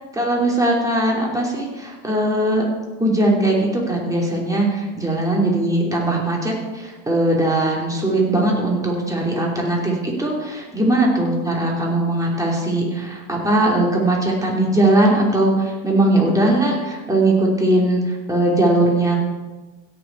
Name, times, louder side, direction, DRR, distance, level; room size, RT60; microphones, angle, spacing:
voice 1, 0.1-2.7 3.0-19.2, right 1 dB, 10° right, -2 dB, 3.1 m, -19 dB
16.5 x 7.0 x 4.6 m, 1.2 s
supercardioid pair, 105°, 32 cm